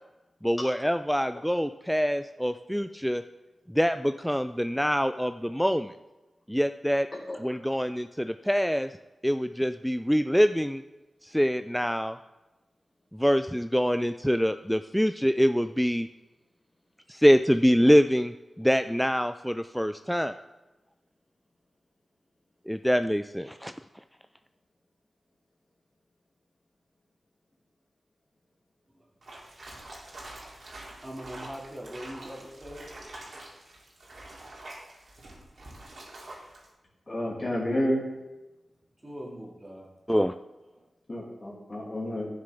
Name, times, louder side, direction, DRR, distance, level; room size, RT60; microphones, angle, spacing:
voice 1, 0.4-3.2 3.7-5.9 6.5-7.1 7.3-8.9 9.2-10.8 11.2-12.2 13.1-16.1 17.1-20.4 22.7-23.7 40.1-40.3, equal, ahead, 10 dB, 0.3 m, -25 dB
sound 1, 29.2-36.7, right 1 dB, 65° right, 2.5 m, -46 dB
voice 2, 31.0-32.8 39.0-39.9 40.7-40.8, equal, 30° right, -4 dB, 2.2 m, -41 dB
voice 3, 37.1-38.0 41.1-42.3, left 1 dB, 40° left, -5 dB, 2.5 m, -30 dB
11.0 x 6.5 x 3.5 m, 1.1 s
cardioid pair, 50°, 0 cm